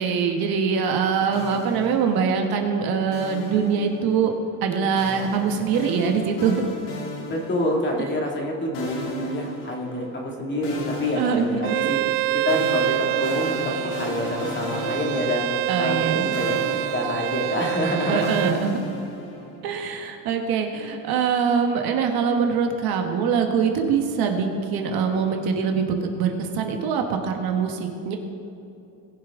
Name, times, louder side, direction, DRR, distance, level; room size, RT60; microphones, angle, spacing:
voice 1, 0.0-4.3 4.6-6.6 11.2-11.7 15.7-16.4 18.1-18.8 19.6-28.2, right 6 dB, 50° right, 4 dB, 1.3 m, -23 dB
sound 1, 1.3-2.6 3.1-4.3 5.0-8.1 8.7-10.3 10.6-16.1 16.3-19.6, left 2 dB, 70° left, 2.8 m, -36 dB
voice 2, 7.3-12.0 12.4-13.5 13.8-15.4 15.8-16.6 16.9-18.3, left 1 dB, 25° left, 0 dB, 2.2 m, -27 dB
Bowed string instrument, 11.6-18.6, right 17 dB, 80° right, 0.5 m, -26 dB
19.5 x 7.4 x 3.6 m, 2.7 s
supercardioid pair, 130°, 45 cm